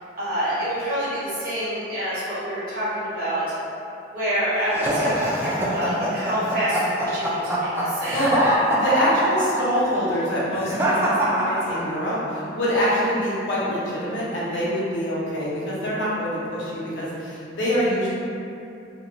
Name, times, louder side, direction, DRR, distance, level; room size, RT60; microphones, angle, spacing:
voice 1, 0.2-3.4 4.1-8.2, equal, 50° right, -11 dB, 1.1 m, -27 dB
sound 1, 4.7-12.2, right 1 dB, 15° right, 0.3 m, -24 dB
voice 2, 8.7-18.1, equal, 75° left, -8 dB, 0.7 m, -25 dB
2.8 x 2.1 x 2.5 m, 2.7 s
head